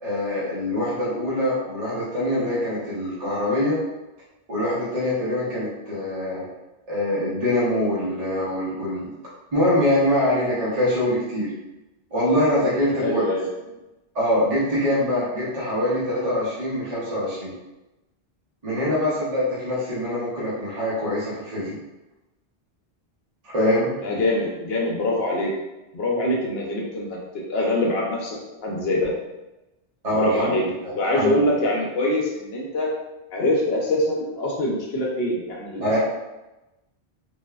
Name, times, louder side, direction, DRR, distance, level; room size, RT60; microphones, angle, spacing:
voice 1, 0.0-3.8 4.5-6.4 6.9-9.1 9.5-11.5 12.1-13.3 14.1-17.5 18.6-21.8 23.5-23.9 30.0-31.5 35.8-36.0, left 1 dB, 40° right, -8 dB, 0.7 m, -24 dB
voice 2, 13.0-13.4 24.0-25.5 25.9-27.2 27.5-28.4 28.6-29.1 30.1-30.6 30.9-32.9 33.3-36.0, left 1 dB, 75° left, -2 dB, 0.8 m, -24 dB
3.1 x 2.1 x 2.3 m, 1.0 s
omnidirectional pair, 1.1 m